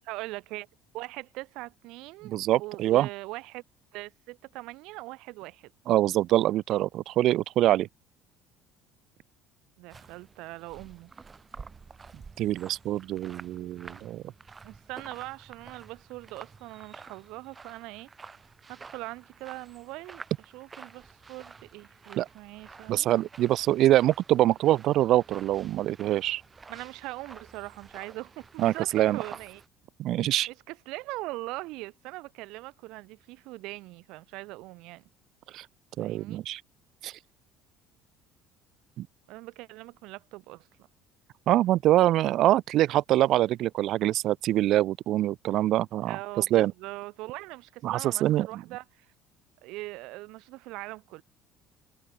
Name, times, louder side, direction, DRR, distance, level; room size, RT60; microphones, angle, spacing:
voice 1, 0.1-0.7 0.9-3.6 3.9-5.7 9.8-11.1 14.6-18.1 18.7-20.2 20.5-23.1 26.7-29.6 30.5-35.1 36.0-36.4 39.3-40.7 46.1-49.1 49.6-51.2, right 21 dB, 70° right, 5.3 m, -41 dB
voice 2, 2.2-3.1 5.9-7.9 12.4-14.2 22.2-22.3 22.9-26.4 28.6-29.2 30.0-30.5 35.5-35.6 36.0-36.6 37.0-37.1 39.0-39.1 41.5-46.7 47.8-48.5, right 14 dB, 50° right, 0.4 m, -24 dB
sound 1, 9.9-29.7, right 4 dB, 20° right, 2.6 m, -50 dB
cardioid pair, 155°, 0 cm